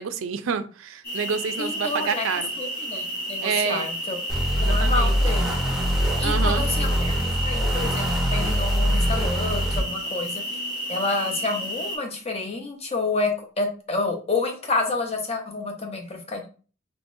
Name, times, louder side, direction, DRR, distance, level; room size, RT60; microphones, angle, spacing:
voice 1, 0.0-2.5 3.4-3.9 4.5-5.2 6.2-6.6, right 6 dB, 85° right, 0.4 m, -28 dB
sound 1, 1.0-12.0, right 1 dB, 55° left, 1.6 m, -32 dB
voice 2, 1.6-2.3 2.6-4.2 4.6-5.5 6.2-7.1 7.4-10.4 10.9-16.5, left 3 dB, 30° left, 0.7 m, -29 dB
sound 2, 4.3-9.8, equal, ahead, 0.7 m, -23 dB
3.6 x 3.0 x 2.6 m
head